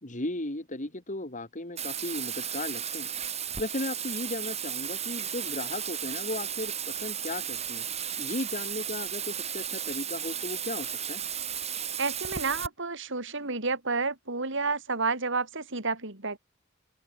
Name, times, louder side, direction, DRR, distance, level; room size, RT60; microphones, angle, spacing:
voice 1, 0.0-3.1 3.6-7.8 8.2-11.2, left 2 dB, 40° left, 3.9 m, -36 dB
Bathtub (filling or washing), 1.8-12.7, right 9 dB, 30° right, 4.6 m, -34 dB
voice 2, 12.0-16.4, right 4 dB, 65° right, 4.6 m, -30 dB
open air
head